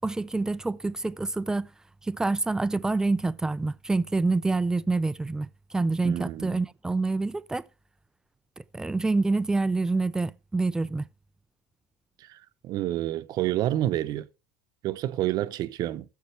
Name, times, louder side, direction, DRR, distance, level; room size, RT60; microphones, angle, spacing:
voice 1, 0.0-1.7 2.0-7.6 8.6-11.1, right 3 dB, 5° right, 0.4 m, -27 dB
voice 2, 6.0-6.6 12.2-12.4 12.6-14.3 14.8-16.0, right 13 dB, 45° right, 0.8 m, -28 dB
14.0 x 7.3 x 3.3 m
supercardioid pair, 125°, 9 cm